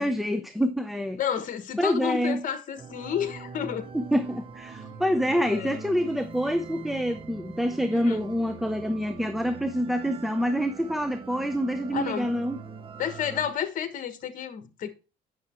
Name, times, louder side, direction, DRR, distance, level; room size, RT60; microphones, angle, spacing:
voice 1, 0.0-1.2 1.8-2.4 3.9-12.6, equal, ahead, 0.7 m, -27 dB
voice 2, 1.2-3.9 4.8-5.8 7.9-8.2 11.9-12.3 13.0-14.9, left 8 dB, 50° left, 1.4 m, -31 dB
sound 1, 2.8-13.5, right 5 dB, 30° right, 0.8 m, -43 dB
9.4 x 6.3 x 4.4 m
cardioid pair, 110°, 17 cm